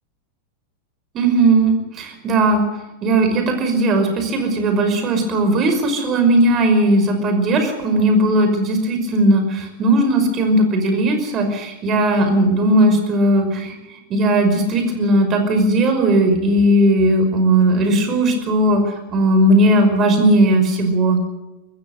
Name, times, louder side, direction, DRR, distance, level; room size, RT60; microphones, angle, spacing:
voice 1, 1.1-2.7 3.0-21.2, right 1 dB, 30° right, 6 dB, 5.6 m, -17 dB
23.5 x 15.5 x 8.2 m, 1.0 s
figure-of-eight pair, 90°, 0 cm